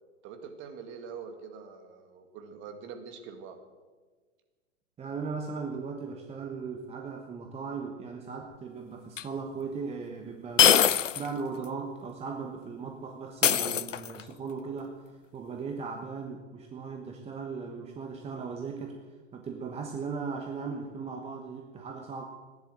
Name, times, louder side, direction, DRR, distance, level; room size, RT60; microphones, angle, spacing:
voice 1, 0.2-3.6, right 6 dB, 30° right, 6 dB, 2.0 m, -44 dB
voice 2, 5.0-15.0 15.3-19.0 19.3-22.2, right 5 dB, 15° right, 3 dB, 1.2 m, -38 dB
sound 1, 9.2-9.3 10.6-11.3 11.6-11.7 13.4-14.3, left 9 dB, 80° left, 0.6 m, -22 dB
15.5 x 10.5 x 7.7 m, 1.4 s
figure-of-eight pair, 105°, 37 cm